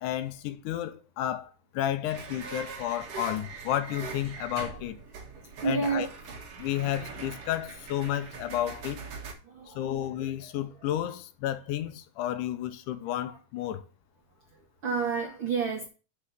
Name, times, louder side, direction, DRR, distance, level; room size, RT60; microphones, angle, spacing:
voice 1, 0.0-5.0 5.6-6.1 6.6-9.0 9.7-13.9, left 12 dB, 85° left, 2.2 m, -32 dB
sound 1, 2.1-9.3, right 4 dB, 55° right, 2.0 m, -42 dB
voice 2, 5.6-6.1 9.4-10.0 14.8-15.9, right 5 dB, 75° right, 1.1 m, -29 dB
5.8 x 5.6 x 6.6 m
omnidirectional pair, 3.7 m